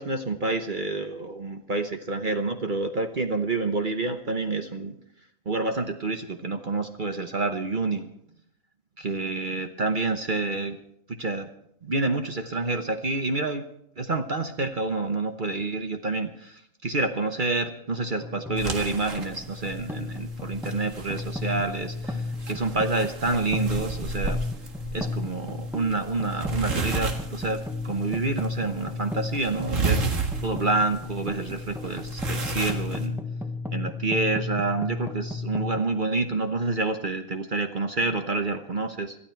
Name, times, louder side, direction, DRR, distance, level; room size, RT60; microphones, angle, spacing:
voice 1, 0.0-4.9 5.5-8.1 9.0-10.8 11.1-11.5 11.8-13.6 14.0-24.4 24.9-30.0 30.4-33.2 33.7-39.2, right 3 dB, 40° right, 6 dB, 1.1 m, -28 dB
sound 1, 18.2-35.8, left 3 dB, ahead, 0.9 m, -33 dB
sound 2, 18.6-33.1, right 4 dB, 65° right, 2.1 m, -34 dB
21.5 x 13.0 x 4.5 m, 0.75 s
omnidirectional pair, 1.4 m